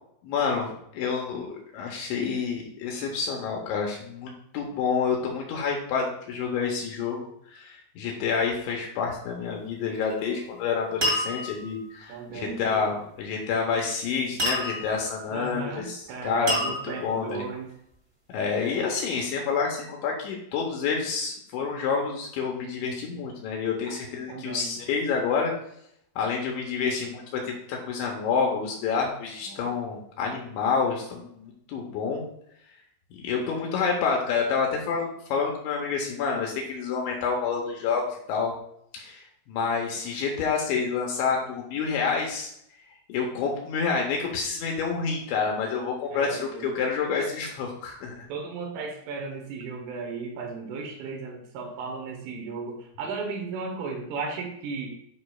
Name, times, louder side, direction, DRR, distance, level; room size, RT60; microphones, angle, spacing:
voice 1, 0.2-17.4 18.3-25.5 26.2-32.2 33.1-38.5 38.9-42.5 43.1-48.3, left 5 dB, 75° left, 0 dB, 2.9 m, -28 dB
sound 1, 9.9-10.4 11.0-11.7 14.4-15.1 16.5-17.3, equal, 30° right, 1.7 m, -28 dB
voice 2, 12.1-12.8 15.3-17.7 18.5-18.8 23.9-24.0 24.3-24.7 29.5-29.7 46.1-46.7 48.3-55.0, right 4 dB, 75° right, 2 dB, 3.5 m, -35 dB
11.0 x 5.3 x 2.3 m, 0.73 s
omnidirectional pair, 5.9 m